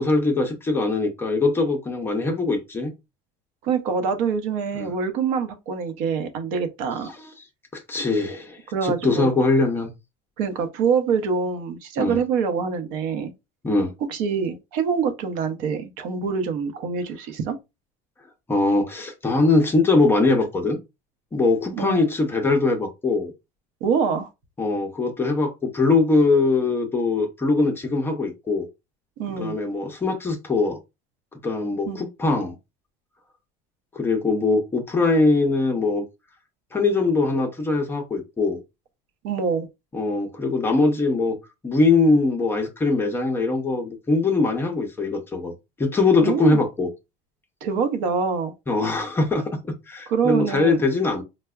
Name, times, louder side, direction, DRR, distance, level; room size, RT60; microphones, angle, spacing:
voice 1, 0.0-2.9 4.7-4.9 7.0-7.2 7.7-9.9 12.0-12.2 13.6-13.9 18.5-20.8 21.3-23.3 24.6-28.7 29.4-30.8 31.3-32.6 33.9-36.1 36.7-38.6 39.9-41.4 41.6-46.9 48.7-51.2, left 3 dB, 15° left, 0.5 m, -22 dB
voice 2, 3.6-7.1 8.7-9.3 10.4-13.3 14.1-17.6 21.7-22.0 23.8-24.3 29.2-29.6 31.9-32.0 39.2-39.7 46.2-46.6 47.6-48.5 50.1-50.8, right 6 dB, 70° right, 0.7 m, -25 dB
4.5 x 2.1 x 2.3 m
cardioid pair, 150°, 17 cm